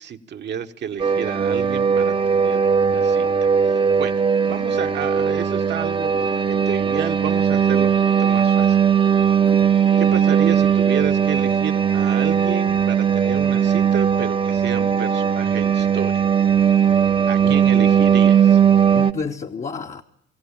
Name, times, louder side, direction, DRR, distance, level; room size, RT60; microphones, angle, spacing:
voice 1, 0.0-8.8 10.0-16.2 17.3-18.6, right 8 dB, 60° right, 6 dB, 1.3 m, -31 dB
sound 1, 1.0-19.1, right 7 dB, 25° right, 0.8 m, -18 dB
voice 2, 9.4-9.7 17.4-18.1 18.9-20.0, left 5 dB, 40° left, 3 dB, 1.0 m, -31 dB
23.0 x 16.5 x 8.7 m, 0.74 s
cardioid pair, 90°, 20 cm